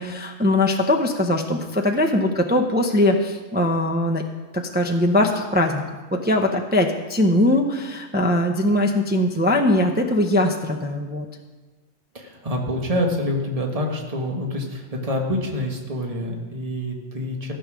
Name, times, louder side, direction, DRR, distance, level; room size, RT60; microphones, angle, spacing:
voice 1, 0.0-4.2 4.5-5.8 6.1-11.3, left 1 dB, 10° right, 2 dB, 0.6 m, -21 dB
voice 2, 12.1-17.5, left 1 dB, 30° right, 1 dB, 1.5 m, -26 dB
15.0 x 7.0 x 6.2 m, 1.3 s
omnidirectional pair, 1.3 m